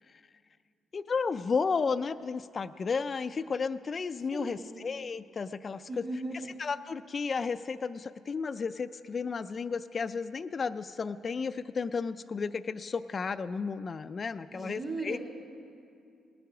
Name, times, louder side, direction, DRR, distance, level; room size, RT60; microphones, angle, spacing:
voice 1, 0.9-6.0 6.6-15.2, left 5 dB, 40° left, 11 dB, 0.3 m, -33 dB
voice 2, 4.3-4.8 5.9-6.4 14.5-15.2, right 2 dB, 40° right, 1 dB, 2.2 m, -37 dB
19.5 x 8.2 x 6.0 m, 2.5 s
cardioid pair, 90°, 0 cm